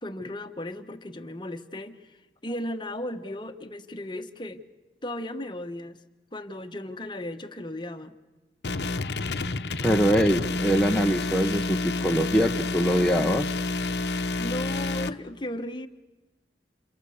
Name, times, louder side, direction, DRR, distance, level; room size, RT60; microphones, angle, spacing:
voice 1, 0.0-4.6 5.0-6.0 6.3-8.1 14.1-15.9, left 1 dB, 25° left, 8 dB, 1.2 m, -36 dB
sound 1, 8.6-15.1, left 3 dB, 70° left, 0.9 m, -29 dB
voice 2, 9.8-13.5, equal, 5° left, 1 dB, 0.9 m, -23 dB
29.5 x 28.0 x 7.1 m, 1.1 s
head